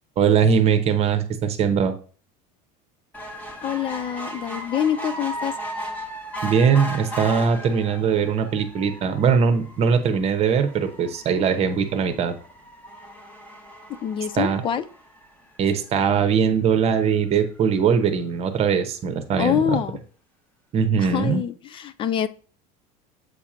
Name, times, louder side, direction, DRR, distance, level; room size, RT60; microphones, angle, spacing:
voice 1, 0.2-1.9 6.4-12.3 14.4-14.6 15.6-19.8 20.7-21.4, right 6 dB, 35° right, 9 dB, 0.8 m, -21 dB
sound 1, 3.1-15.7 16.3-16.4 16.7-16.8 17.0-17.1, right 1 dB, 10° left, 0.9 m, -37 dB
voice 2, 3.6-5.5 14.0-14.8 19.4-20.0 21.0-22.3, left 9 dB, 30° left, 14 dB, 0.3 m, -25 dB
8.0 x 2.9 x 4.9 m, 0.41 s
supercardioid pair, 145°, 19 cm